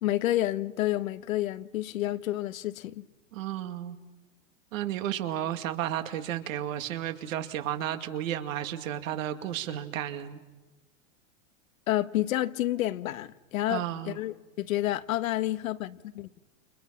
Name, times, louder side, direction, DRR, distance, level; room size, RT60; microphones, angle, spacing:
voice 1, 0.0-3.0 11.9-16.4, left 14 dB, 85° left, 1.3 m, -29 dB
voice 2, 3.3-4.0 4.7-10.4 13.7-14.2, right 11 dB, 75° right, 2.4 m, -33 dB
29.5 x 29.0 x 5.8 m
supercardioid pair, 145°, 40 cm